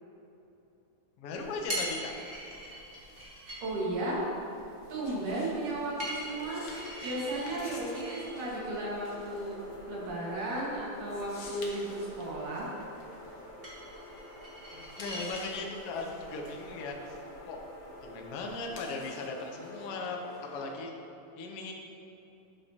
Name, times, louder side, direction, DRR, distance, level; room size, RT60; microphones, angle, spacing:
voice 1, 1.2-2.2 14.7-16.9 17.5-17.6 18.0-20.9 21.4-21.7, left 3 dB, 70° left, 1 dB, 1.5 m, -38 dB
sound 1, 1.4-18.9, equal, 30° right, 1.1 m, -45 dB
sound 2, 2.6-14.3 14.7-20.8, left 3 dB, 85° left, 1.0 m, -53 dB
voice 2, 3.6-4.3 4.9-6.6 7.0-12.7, right 1 dB, 85° right, -5 dB, 3.3 m, -34 dB
sound 3, 6.2-20.8, left 1 dB, 35° left, 2.1 m, -49 dB
12.0 x 6.5 x 2.9 m, 2.9 s
omnidirectional pair, 3.6 m